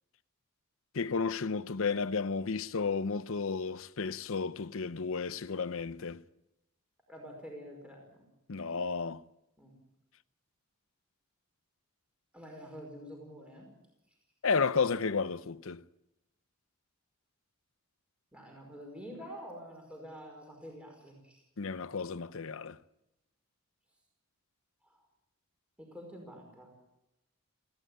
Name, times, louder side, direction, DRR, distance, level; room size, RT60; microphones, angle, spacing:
voice 1, 0.9-6.2 8.5-9.2 14.4-15.8 21.6-22.8, left 5 dB, 65° left, 0.7 m, -32 dB
voice 2, 7.1-8.2 9.6-9.7 12.3-13.7 18.3-21.4 24.8-25.0 25.8-26.7, equal, 5° right, 5.2 m, -47 dB
20.0 x 16.0 x 9.1 m
head